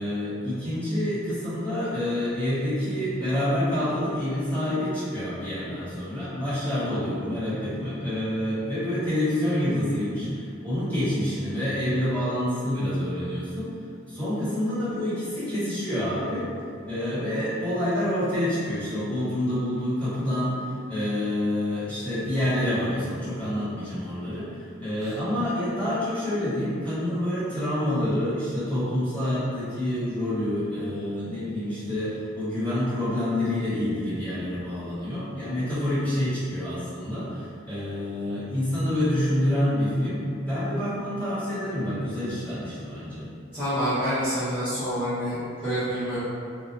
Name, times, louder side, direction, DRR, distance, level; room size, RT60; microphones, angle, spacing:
voice 1, 0.0-13.7 14.1-16.5 16.8-43.3, left 1 dB, 10° left, -15 dB, 1.1 m, -27 dB
voice 2, 43.5-45.4 45.6-46.2, equal, 10° right, -18 dB, 0.6 m, -27 dB
2.3 x 2.1 x 2.6 m, 2.3 s
head